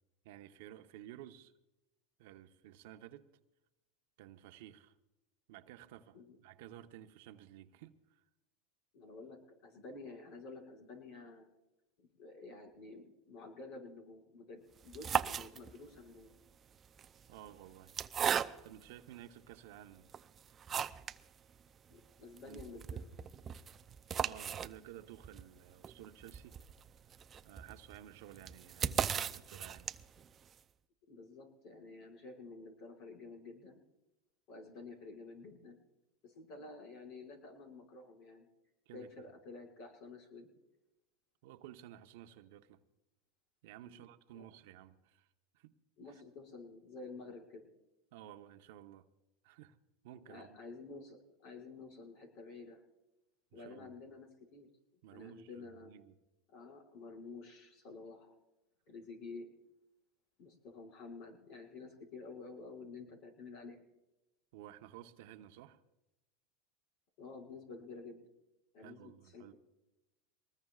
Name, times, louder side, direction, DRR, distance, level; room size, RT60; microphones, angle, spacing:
voice 1, 0.2-1.5 2.2-3.3 4.2-4.9 5.5-8.2 17.3-17.9 18.6-20.1 22.5-22.6 24.2-26.6 27.4-29.9 38.9-39.1 41.4-42.8 43.6-45.3 45.5-45.7 48.1-49.1 49.4-49.8 50.0-50.6 53.5-53.9 55.0-56.2 64.5-65.8 68.8-69.5, right 12 dB, 70° right, 1.0 m, -54 dB
voice 2, 8.9-11.5 12.0-16.3 21.9-23.1 31.1-33.8 34.5-35.8 36.2-38.5 38.9-40.5 43.8-44.0 44.3-44.4 46.0-47.7 50.3-52.8 53.5-54.7 55.1-55.9 56.5-58.4 58.9-59.5 60.4-63.8 67.2-68.2 68.7-69.5, left 3 dB, 60° left, 5.7 m, -50 dB
sound 1, 14.8-16.0 16.8-18.9 19.5-19.6 20.1-21.2 21.6-21.7 21.9-22.0 22.4-30.3, right 8 dB, 30° right, 0.5 m, -38 dB
23.5 x 20.0 x 2.4 m
supercardioid pair, 125°, 0 cm